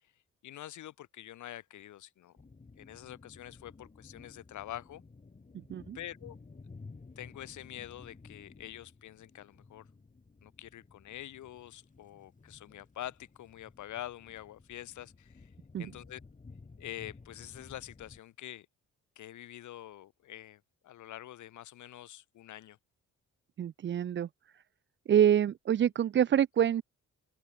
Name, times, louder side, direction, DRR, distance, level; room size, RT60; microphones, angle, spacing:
voice 1, 0.4-2.4 2.8-5.0 5.9-6.4 7.2-9.9 10.4-15.5 15.8-16.2 16.8-18.7 19.2-22.8, left 13 dB, 75° left, 2.8 m, -46 dB
sound 1, 2.4-18.2, left 4 dB, 25° left, 4.4 m, -54 dB
voice 2, 5.5-6.0 15.7-15.9 23.6-24.6 25.1-26.8, right 9 dB, 40° right, 0.5 m, -27 dB
open air
cardioid pair, 90°, 30 cm